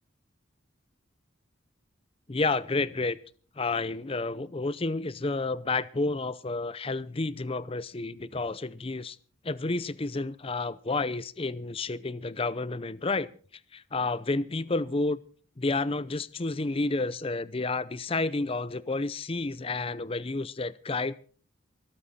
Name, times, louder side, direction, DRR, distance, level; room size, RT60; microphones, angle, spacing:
voice 1, 2.3-3.2 3.6-9.2 9.4-13.3 13.7-15.2 15.6-21.1, left 3 dB, 30° left, 17 dB, 0.6 m, -30 dB
25.0 x 8.9 x 4.2 m, 0.42 s
head